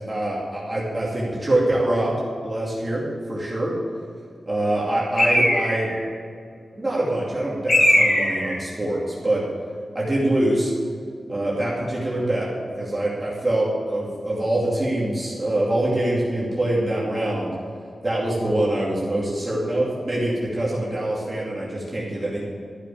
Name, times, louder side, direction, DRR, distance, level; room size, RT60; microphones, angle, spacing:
voice 1, 0.1-2.1 2.4-3.7 4.5-5.9 6.7-9.4 9.9-10.7 11.3-12.5 12.8-17.5 18.0-22.4, right 1 dB, 20° right, -6 dB, 2.6 m, -24 dB
Bird, 5.2-6.0 7.7-8.6, left 1 dB, 75° left, 3.8 m, -19 dB
13.5 x 6.7 x 8.6 m, 2.3 s
wide cardioid pair, 170°, 0 cm